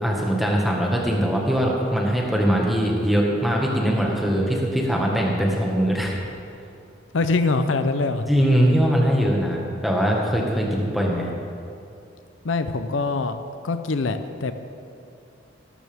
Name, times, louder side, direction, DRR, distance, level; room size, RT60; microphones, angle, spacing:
voice 1, 0.0-6.2 8.3-11.3, equal, ahead, -2 dB, 1.7 m, -21 dB
voice 2, 7.1-8.2 12.4-13.4 13.6-14.5, left 3 dB, 80° left, 9 dB, 0.7 m, -23 dB
18.5 x 12.0 x 3.6 m, 2.6 s
head